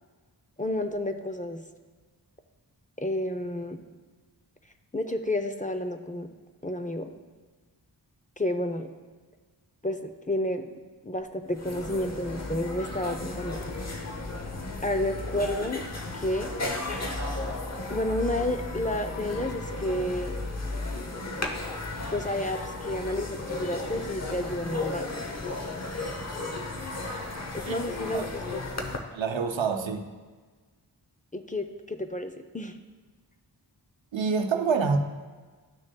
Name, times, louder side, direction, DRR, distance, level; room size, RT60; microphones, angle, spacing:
voice 1, 0.6-1.6 3.0-3.8 4.9-6.3 6.6-7.1 8.4-8.9 9.8-10.8 11.0-13.6 14.8-15.8 16.1-16.5 17.9-20.4 22.1-25.1 27.5-29.0 31.3-32.8, left 1 dB, 20° left, 7 dB, 0.5 m, -31 dB
sound 1, 11.2-11.3 11.5-29.0, left 2 dB, 35° left, 0.9 m, -34 dB
voice 2, 29.1-30.1 34.1-35.0, right 5 dB, 90° right, 6 dB, 0.7 m, -27 dB
12.5 x 6.2 x 2.2 m, 1.4 s
wide cardioid pair, 60°, 44 cm